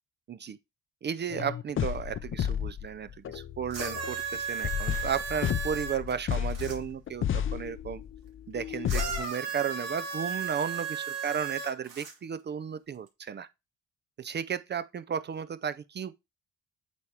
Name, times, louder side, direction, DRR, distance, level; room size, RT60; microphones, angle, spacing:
voice 1, 0.3-0.6 1.0-8.0 8.5-13.5 14.2-16.2, right 7 dB, 35° right, 0.4 m, -34 dB
sound 1, 1.3-9.3, left 9 dB, 45° left, 0.5 m, -32 dB
sound 2, 3.7-6.8 8.9-12.1 13.1-13.2, right 6 dB, 60° right, 2.3 m, -35 dB
8.3 x 2.9 x 4.7 m
cardioid pair, 90°, 30 cm